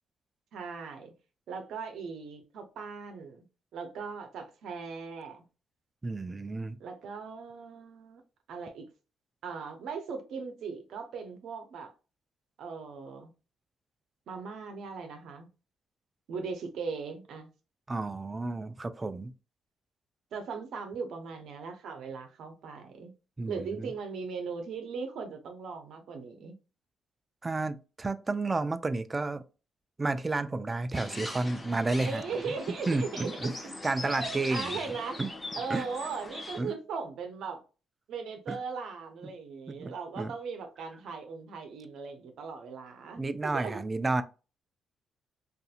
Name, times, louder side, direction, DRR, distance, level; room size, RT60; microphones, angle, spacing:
voice 1, 0.5-1.1 1.5-3.5 3.7-5.4 6.8-8.2 8.5-8.9 9.4-11.9 12.6-13.3 14.3-15.5 16.3-17.5 20.3-23.1 23.5-26.5 32.0-33.7 34.0-35.2 35.6-37.6 38.1-43.8, right 5 dB, 75° right, 0.6 m, -39 dB
voice 2, 6.0-6.8 17.9-19.3 23.4-23.9 27.4-29.4 30.0-32.5 32.9-33.5 33.8-34.7 35.2-35.3 35.7-35.9 36.6-36.7 38.5-38.6 39.2-39.3 39.7-40.3 43.2-44.2, right 3 dB, 25° right, 0.3 m, -31 dB
sound 1, 30.9-36.6, left 2 dB, 20° left, 0.7 m, -41 dB
2.7 x 2.5 x 2.4 m
cardioid pair, 90°, 0 cm